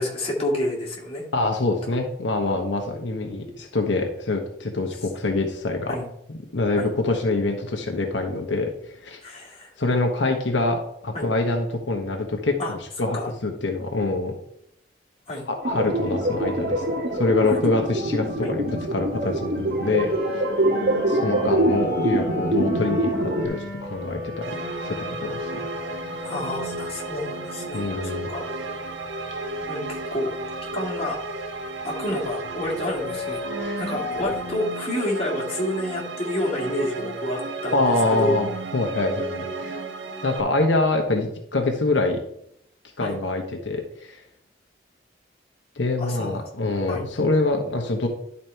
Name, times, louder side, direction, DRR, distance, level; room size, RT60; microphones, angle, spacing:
voice 1, 0.0-1.3 1.9-2.0 5.9-6.1 6.8-6.9 9.2-9.7 11.1-11.3 12.6-12.7 13.1-13.3 15.3-15.5 17.5-17.6 18.4-18.5 25.3-25.4 26.3-28.5 29.7-30.3 30.7-31.2 31.8-33.4 33.7-38.4 43.0-43.2 46.0-46.4 46.9-47.1, left 1 dB, 30° left, -4 dB, 2.2 m, -29 dB
voice 2, 1.3-6.0 6.5-9.2 9.8-14.3 15.5-16.8 17.1-20.1 20.3-20.4 21.1-24.5 24.8-25.6 25.9-26.0 27.7-28.3 33.6-33.8 37.7-39.8 40.2-42.2 43.0-44.2 45.8-48.1, left 2 dB, 85° left, 3 dB, 1.1 m, -25 dB
sound 1, 15.6-23.5, right 1 dB, 60° right, 1.4 m, -24 dB
sound 2, 15.7-34.5, left 3 dB, 30° right, 3.1 m, -37 dB
sound 3, 24.4-40.4, right 3 dB, 90° right, 1.1 m, -33 dB
11.0 x 4.1 x 4.5 m, 0.73 s
head